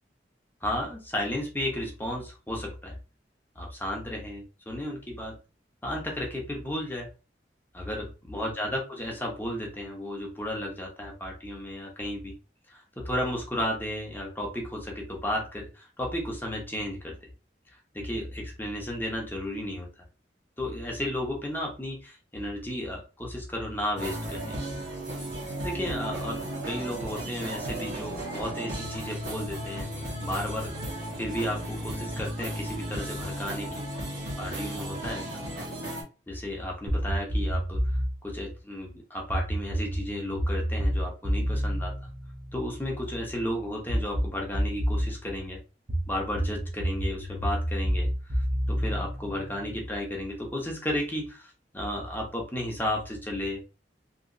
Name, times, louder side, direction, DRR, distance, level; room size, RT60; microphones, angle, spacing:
voice 1, 0.6-3.0 3.6-5.4 5.8-7.1 7.7-12.3 12.7-17.2 17.9-19.9 20.6-24.6 25.6-29.9 30.2-30.7 31.2-33.8 34.4-35.4 36.3-41.9 42.5-45.6 46.1-48.1 48.4-53.6, left 1 dB, 10° left, -1 dB, 0.9 m, -33 dB
sound 1, 24.0-36.0, right 1 dB, 70° right, 1.4 m, -35 dB
sound 2, 36.9-38.2 39.3-43.0 43.9-45.1 45.9-49.8, equal, 30° right, 0.9 m, -29 dB
3.0 x 3.0 x 2.6 m, 0.32 s
head